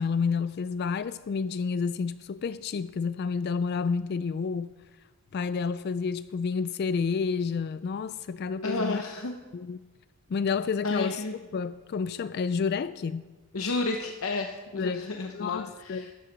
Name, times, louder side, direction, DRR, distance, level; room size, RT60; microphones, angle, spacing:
voice 1, 0.0-4.7 5.3-9.0 9.5-9.8 10.3-13.3 14.7-16.1, left 5 dB, 45° left, 0.3 m, -30 dB
voice 2, 8.6-9.3 10.8-11.3 13.5-16.1, left 3 dB, 70° left, 0.8 m, -31 dB
13.0 x 9.5 x 5.3 m
head